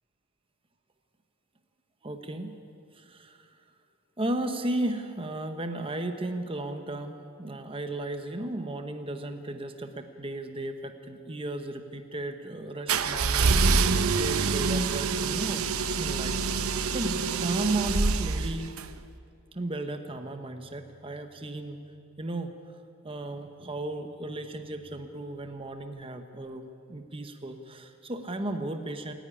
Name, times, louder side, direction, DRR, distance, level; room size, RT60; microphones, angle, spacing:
voice 1, 2.0-2.5 2.9-3.6 4.2-13.7 14.1-15.6 16.0-18.8 19.5-21.8 22.2-22.5 23.0-26.6 26.9-29.1, right 2 dB, 25° right, 6 dB, 1.0 m, -35 dB
sound 1, 12.9-18.9, right 4 dB, 70° right, 0.8 m, -26 dB
28.0 x 10.5 x 9.8 m, 2.4 s
head